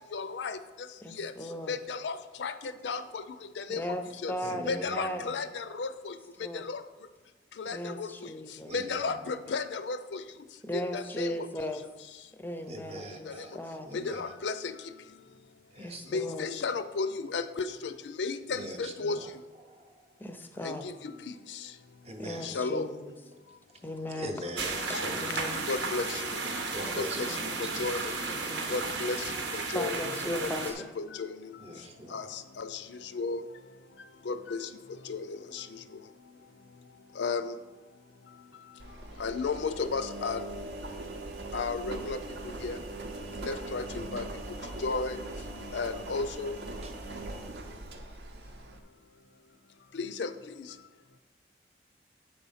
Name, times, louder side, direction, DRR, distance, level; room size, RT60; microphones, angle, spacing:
voice 1, 0.1-0.6 1.2-1.3 1.7-3.2 3.6-3.8 4.2-4.3 4.6-6.1 6.4-6.8 7.6-8.1 8.7-10.2 10.7-11.5 13.3-13.4 13.9-14.7 16.1-17.9 18.2-19.2 20.6-21.1 21.5-21.6 22.4-22.9 24.5-24.6 24.9-25.0 25.7-26.4 27.0-28.1 28.7-31.4 32.1-33.4 34.3-34.7 35.1-35.7 37.2-37.5 39.2-40.4 41.5-42.2 42.4-42.8 43.4-44.2 44.8-45.2 45.7-46.6 49.9-50.3, left 4 dB, 75° left, 12 dB, 0.4 m, -34 dB
voice 2, 1.0-1.8 3.7-5.3 6.4-6.6 7.7-8.7 10.6-11.8 12.4-13.9 15.8-16.5 20.2-20.9 22.2-23.1 23.8-24.4 25.1-25.6 29.7-30.9, left 1 dB, 10° left, 6 dB, 0.5 m, -37 dB
voice 3, 4.4-5.4 8.6-9.3 12.6-13.5 13.8-14.3 15.7-16.4 18.5-19.3 19.6-20.1 22.0-22.6 24.1-25.6 26.7-27.9 28.3-28.9 31.6-32.4 46.8-47.2, equal, 35° right, 4 dB, 0.7 m, -43 dB
sound 1, 24.6-30.7, right 3 dB, 90° right, 1.0 m, -34 dB
Engine, 38.8-48.8, right 2 dB, 70° right, 0.7 m, -41 dB
7.8 x 4.1 x 5.6 m, 1.3 s
head